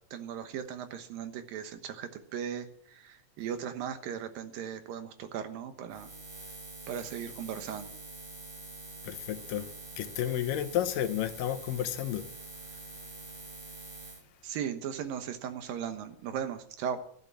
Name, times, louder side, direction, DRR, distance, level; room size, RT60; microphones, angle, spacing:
voice 1, 0.1-6.1 6.9-7.9 14.4-17.0, right 8 dB, 80° right, 3.0 m, -37 dB
Buzz, 5.9-14.2, right 2 dB, 25° right, 0.9 m, -46 dB
voice 2, 9.0-12.3 12.7-12.8, left 11 dB, 75° left, 2.4 m, -32 dB
14.0 x 11.5 x 7.5 m
omnidirectional pair, 4.0 m